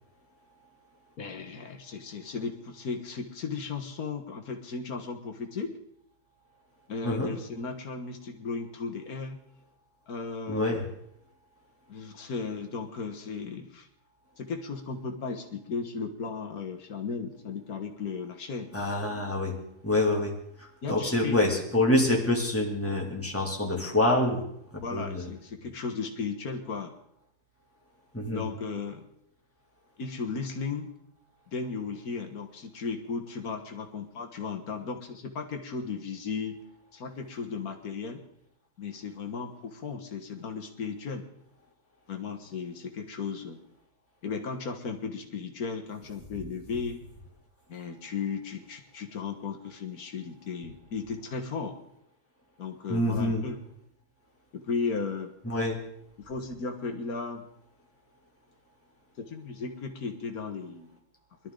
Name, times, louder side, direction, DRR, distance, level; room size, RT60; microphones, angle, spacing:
voice 1, 1.2-5.8 6.9-9.4 10.1-10.8 11.9-13.9 14.4-18.7 20.8-21.4 24.8-26.9 28.3-29.1 30.0-30.9 31.5-36.6 36.9-38.2 38.8-41.2 42.1-43.6 44.2-47.0 47.7-51.8 52.6-53.6 54.5-55.3 56.2-57.5 59.2-60.9, left 4 dB, 85° left, 4 dB, 1.8 m, -35 dB
voice 2, 10.5-10.8 18.7-19.6 19.8-20.3 20.6-24.4 24.7-25.3 28.1-28.4 52.9-53.4 55.4-55.8, left 1 dB, 10° left, -1 dB, 2.6 m, -26 dB
21.5 x 12.5 x 3.8 m, 0.74 s
omnidirectional pair, 1.5 m